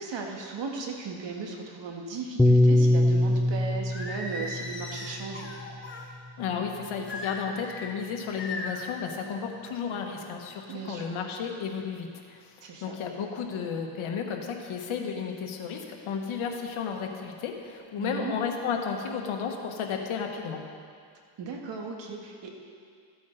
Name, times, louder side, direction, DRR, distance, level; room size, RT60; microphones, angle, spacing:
voice 1, 0.0-5.5 10.7-11.2 12.6-13.0 18.0-18.3 21.4-22.6, right 4 dB, 60° right, 1 dB, 1.7 m, -37 dB
Piano, 2.4-6.8, left 1 dB, 5° left, 0.4 m, -24 dB
Singing, 3.9-6.1 7.1-7.9 8.4-8.9, left 2 dB, 25° left, 1.4 m, -38 dB
voice 2, 6.4-20.6, left 6 dB, 80° left, 3 dB, 1.4 m, -33 dB
14.5 x 8.5 x 4.0 m, 2.2 s
cardioid pair, 110°, 48 cm